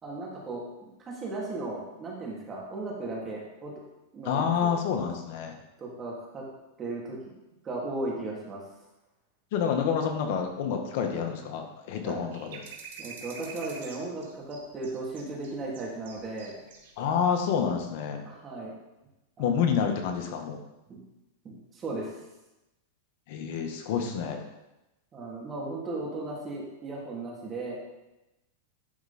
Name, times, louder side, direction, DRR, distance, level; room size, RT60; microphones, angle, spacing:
voice 1, 0.0-3.7 4.1-4.7 5.8-6.4 6.8-7.2 7.6-8.6 12.0-12.2 13.0-16.5 18.2-18.7 19.4-19.8 20.9-21.0 21.4-22.1 25.1-27.8, right 2 dB, 25° right, -4 dB, 3.0 m, -36 dB
voice 2, 4.2-5.5 9.5-12.6 17.0-18.2 19.4-20.6 23.3-24.4, left 7 dB, 60° left, 4 dB, 1.6 m, -28 dB
sound 1, 12.3-16.9 17.2-17.3, right 5 dB, 75° right, 1.9 m, -45 dB
11.5 x 5.0 x 4.4 m, 0.97 s
hypercardioid pair, 130°, 0 cm